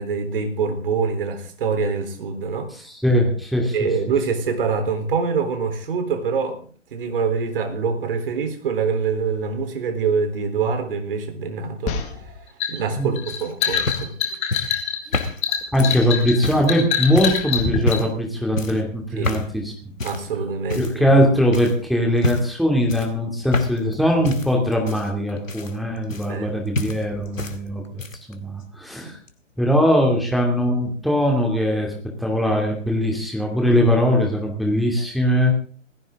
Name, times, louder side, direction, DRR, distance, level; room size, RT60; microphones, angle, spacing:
voice 1, 0.0-2.7 3.7-6.6 6.9-12.0 12.7-14.1 19.2-19.4 20.0-21.1 26.3-26.6 29.0-29.1, right 5 dB, 45° right, 7 dB, 3.8 m, -25 dB
voice 2, 2.8-3.7 13.0-13.1 15.7-19.7 20.8-28.0 28.3-29.2 29.6-31.9 32.2-35.5, equal, ahead, 0 dB, 2.7 m, -20 dB
sound 1, 11.9-18.0, left 8 dB, 15° left, 2.1 m, -25 dB
sound 2, 13.3-16.7 17.2-17.4 17.8-18.2 18.6-18.9 19.2-19.5 20.0-20.3 20.7-21.2 21.5-21.8 22.2-22.6 22.9-23.9 24.2-26.5 26.7-27.6 27.8-28.3 29.3-29.4, left 3 dB, 90° left, 2.4 m, -28 dB
19.5 x 16.0 x 3.8 m, 0.41 s
figure-of-eight pair, 140°, 38 cm